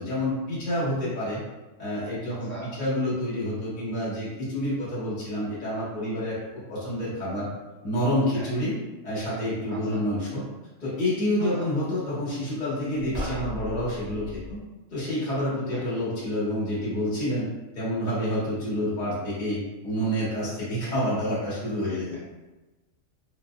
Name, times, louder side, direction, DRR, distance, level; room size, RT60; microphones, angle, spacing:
voice 1, 0.0-1.4 1.8-2.5 2.8-6.4 6.7-7.5 7.8-8.8 9.0-10.4 10.8-14.6 14.9-17.5 17.7-22.2, equal, 40° left, -9 dB, 1.1 m, -28 dB
voice 2, 2.3-2.7 8.3-8.5 9.7-10.0 11.4-11.7 15.7-15.8 21.9-22.2, right 2 dB, 15° left, -8 dB, 0.5 m, -42 dB
sound 1, 13.1-14.6, left 1 dB, 60° right, 0.4 m, -36 dB
3.1 x 2.6 x 2.2 m, 1.1 s
omnidirectional pair, 1.4 m